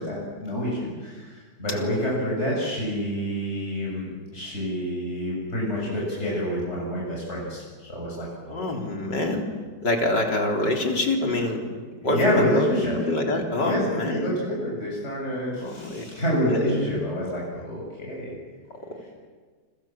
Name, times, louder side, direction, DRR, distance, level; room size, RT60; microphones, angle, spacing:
voice 1, 0.0-8.7 12.0-13.0 13.6-18.3, equal, 40° left, -4 dB, 7.3 m, -27 dB
voice 2, 8.5-9.4 9.8-11.6 12.0-14.3 15.6-16.1 16.5-16.6 18.9-19.0, left 2 dB, 90° left, 1 dB, 4.7 m, -26 dB
30.0 x 26.0 x 7.4 m, 1.5 s
omnidirectional pair, 1.8 m